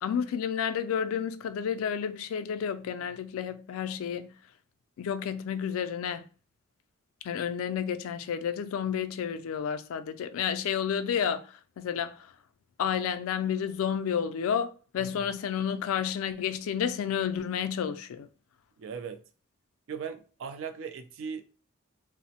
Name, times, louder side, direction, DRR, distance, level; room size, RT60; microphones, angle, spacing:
voice 1, 0.0-4.3 5.0-6.2 7.2-11.5 11.8-12.2 12.8-18.3, left 8 dB, 80° left, 0.3 m, -31 dB
voice 2, 15.0-15.3 18.8-19.2 19.9-21.4, right 6 dB, 65° right, 0.3 m, -38 dB
2.9 x 2.0 x 2.8 m
head